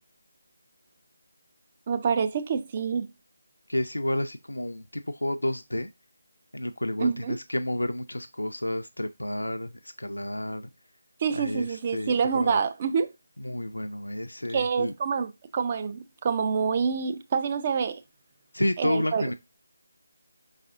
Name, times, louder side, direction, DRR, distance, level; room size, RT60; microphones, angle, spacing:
voice 1, 1.9-3.1 7.0-7.4 11.2-13.1 14.5-18.0 18.8-19.3, right 6 dB, 25° right, 0.4 m, -27 dB
voice 2, 3.7-5.9 6.5-10.7 11.3-12.6 13.4-14.9 18.5-19.3, left 1 dB, 75° left, 0.4 m, -30 dB
5.2 x 4.1 x 2.5 m
figure-of-eight pair, 155°, 0 cm